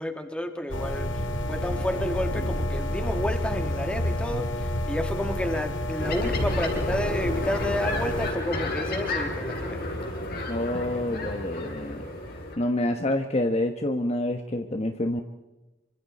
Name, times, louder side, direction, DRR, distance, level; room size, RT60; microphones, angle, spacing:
voice 1, 0.0-9.8, left 1 dB, 5° left, 5 dB, 2.3 m, -31 dB
sound 1, 0.7-8.3, left 1 dB, 80° left, 2.1 m, -29 dB
sound 2, 6.0-12.6, left 2 dB, 55° left, 4.7 m, -31 dB
voice 2, 10.5-12.0 12.6-15.2, left 1 dB, 35° left, 5 dB, 1.3 m, -27 dB
27.5 x 25.0 x 4.3 m, 1.1 s
head